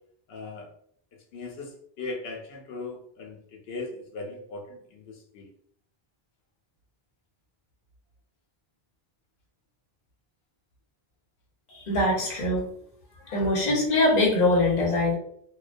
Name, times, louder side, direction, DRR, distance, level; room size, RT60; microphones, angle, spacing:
voice 1, 0.3-0.7 1.3-3.4 3.7-5.5, left 3 dB, 80° left, 2 dB, 0.8 m, -38 dB
voice 2, 11.7-12.6 13.3-15.1, left 2 dB, 50° left, -3 dB, 0.8 m, -23 dB
2.3 x 2.1 x 2.4 m, 0.66 s
omnidirectional pair, 1.0 m